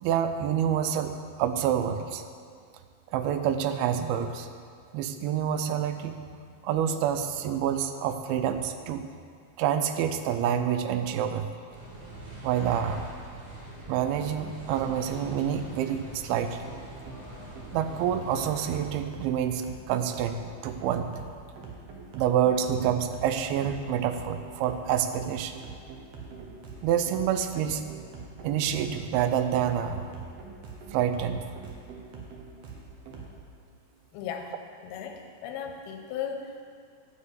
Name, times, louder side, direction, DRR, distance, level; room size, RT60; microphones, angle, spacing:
voice 1, 0.0-2.2 3.1-4.5 4.9-6.2 6.6-9.0 9.6-11.5 12.4-13.1 13.9-16.8 17.7-20.4 20.6-21.4 22.1-25.6 26.8-27.8 28.4-30.0 30.9-31.4, right 9 dB, 90° right, 9 dB, 2.5 m, -27 dB
sound 1, 11.7-18.9, right 1 dB, 45° right, 1.3 m, -43 dB
sound 2, 14.1-33.4, right 4 dB, 60° right, 1.8 m, -45 dB
voice 2, 34.1-34.5 34.8-36.6, left 7 dB, 90° left, 4 dB, 2.7 m, -36 dB
10.0 x 5.3 x 8.2 m, 2.2 s
omnidirectional pair, 4.4 m